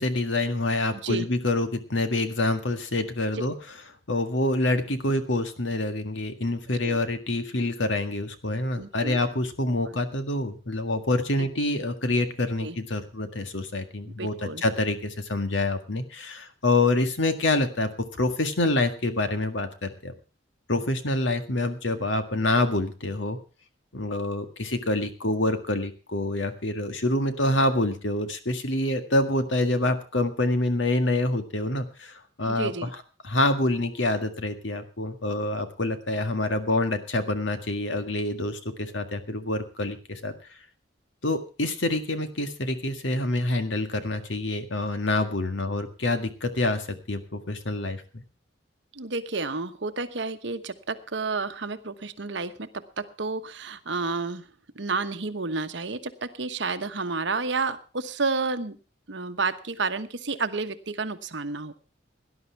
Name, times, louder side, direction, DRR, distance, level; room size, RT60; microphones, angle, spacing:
voice 1, 0.0-3.5 4.1-17.9 18.2-20.1 20.7-23.4 23.9-32.9 33.2-40.3 41.2-48.2, left 2 dB, 75° left, 8 dB, 1.8 m, -26 dB
voice 2, 0.9-1.3 6.8-7.0 8.8-9.2 9.8-10.0 11.4-11.5 12.6-12.8 14.2-14.6 32.5-32.9 48.9-54.5 54.8-58.8 59.1-61.7, right 4 dB, 65° right, 10 dB, 1.1 m, -31 dB
18.0 x 11.0 x 4.6 m, 0.34 s
head